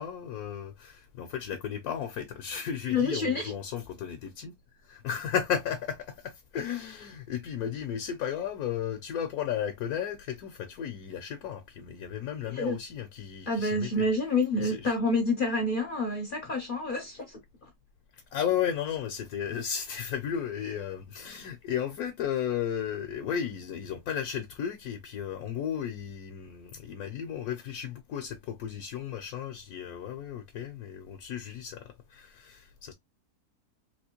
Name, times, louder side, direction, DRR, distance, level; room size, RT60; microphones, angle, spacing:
voice 1, 0.0-4.5 4.9-14.1 14.6-14.9 18.3-31.8 32.1-32.9, left 9 dB, 70° left, 1.1 m, -34 dB
voice 2, 2.9-3.5 12.5-12.8 13.5-17.7, left 2 dB, 45° left, 0.7 m, -28 dB
3.4 x 2.9 x 2.9 m
omnidirectional pair, 1.7 m